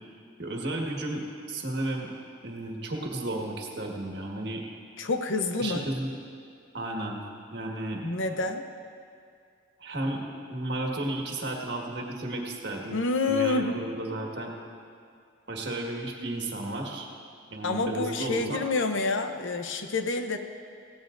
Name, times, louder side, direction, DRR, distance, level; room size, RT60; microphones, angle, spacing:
voice 1, 0.4-2.1 2.4-4.6 5.6-6.2 6.7-7.2 7.5-8.0 9.8-13.0 13.3-14.5 15.5-17.1 17.5-18.6, right 1 dB, 55° right, 0 dB, 1.7 m, -33 dB
voice 2, 5.0-5.9 8.0-8.6 12.9-13.8 17.6-20.4, left 3 dB, 70° left, 7 dB, 0.8 m, -28 dB
18.0 x 16.0 x 2.6 m, 2.4 s
head